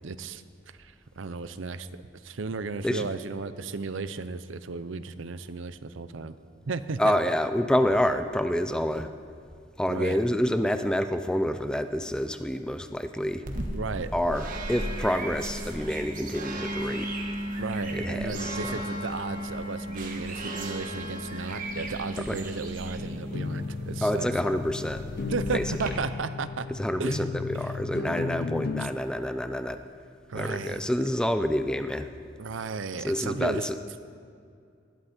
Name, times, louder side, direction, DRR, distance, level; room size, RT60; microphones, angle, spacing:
voice 1, 0.0-0.4 0.8-1.9 2.2-6.3 6.7-7.2 9.9-10.2 13.7-14.1 17.6-24.3 25.3-26.7 27.0-27.3 27.6-27.8 30.3-30.9 32.4-33.7, right 4 dB, 85° right, 13 dB, 0.6 m, -34 dB
voice 2, 7.0-9.1 9.8-13.5 14.1-17.1 17.9-18.7 22.3-22.4 24.0-25.0 25.5-25.6 26.7-29.8 30.3-32.1 33.0-33.8, equal, 5° left, 9 dB, 0.5 m, -28 dB
sound 1, 13.4-25.9, right 1 dB, 45° right, 1.4 m, -35 dB
sound 2, 23.0-28.9, left 4 dB, 55° left, 0.5 m, -34 dB
19.5 x 11.5 x 4.4 m, 2.4 s
head